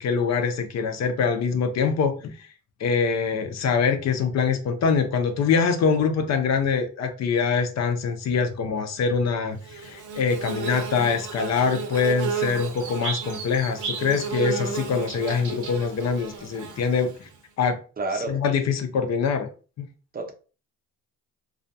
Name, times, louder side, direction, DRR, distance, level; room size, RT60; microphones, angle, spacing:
voice 1, 0.0-2.5 2.8-17.3 17.6-17.8 18.1-19.5 19.8-19.9, left 5 dB, 50° left, 0.6 m, -24 dB
Bird / Buzz, 9.6-17.3, right 6 dB, 60° right, 0.8 m, -33 dB
voice 2, 18.0-18.4 20.1-20.3, right 3 dB, 25° right, 0.6 m, -29 dB
2.4 x 2.2 x 2.6 m
supercardioid pair, 75°, 34 cm